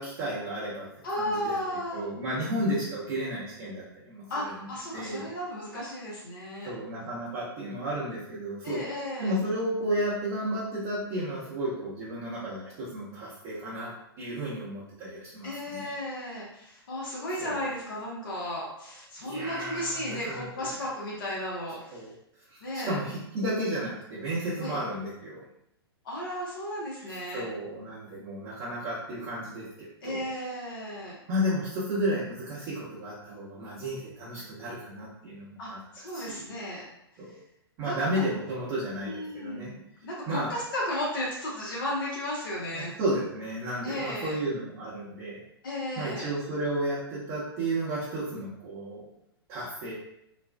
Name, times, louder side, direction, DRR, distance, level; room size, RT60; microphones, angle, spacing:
voice 1, 0.0-1.6 1.9-5.3 6.6-8.8 9.2-13.9 14.2-15.9 17.4-17.6 19.2-20.7 21.9-22.1 22.5-25.4 27.0-30.2 31.3-35.8 36.1-36.4 37.2-37.4 37.8-39.7 40.3-40.5 42.7-45.4 46.0-49.0 49.5-49.9, right 1 dB, 35° right, -9 dB, 0.9 m, -33 dB
voice 2, 1.0-2.1 4.3-6.7 8.6-9.3 15.4-22.1 22.6-23.0 24.6-24.8 26.0-27.4 30.0-31.2 35.6-36.8 37.8-38.2 39.0-42.9 43.8-44.4 45.6-46.3, left 1 dB, 55° left, -6 dB, 0.9 m, -34 dB
2.5 x 2.2 x 2.2 m, 0.78 s
figure-of-eight pair, 110°, 13 cm